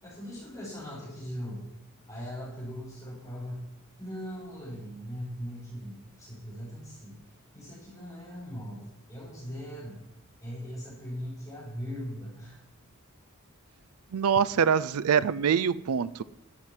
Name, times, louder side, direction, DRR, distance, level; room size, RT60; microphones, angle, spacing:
voice 1, 0.0-1.7 2.1-3.6 4.0-7.2 7.5-10.0 10.4-12.6, equal, 15° left, -7 dB, 6.3 m, -40 dB
voice 2, 14.1-16.2, right 7 dB, 90° right, 17 dB, 0.4 m, -24 dB
12.0 x 9.6 x 7.5 m, 0.87 s
head